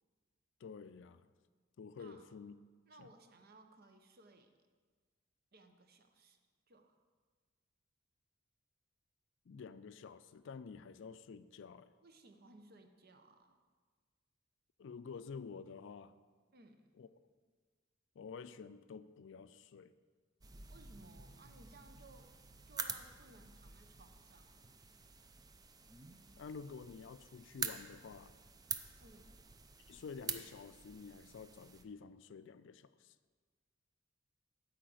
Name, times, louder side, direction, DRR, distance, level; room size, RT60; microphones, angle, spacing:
voice 1, 0.6-1.3 1.8-2.6 3.0-3.1 9.5-11.9 14.8-16.1 17.0-17.1 18.2-19.9 26.4-28.3 29.9-33.1, left 5 dB, 65° left, 14 dB, 0.4 m, -50 dB
voice 2, 2.0-2.3 2.9-4.5 5.5-6.4 6.7-7.0 12.0-13.6 16.5-16.9 20.7-22.4 22.7-24.7 29.0-29.5, right 2 dB, 55° right, 6 dB, 0.8 m, -61 dB
sound 1, 20.4-31.8, right 5 dB, 20° right, 0.5 m, -47 dB
8.6 x 5.0 x 7.7 m, 1.5 s
head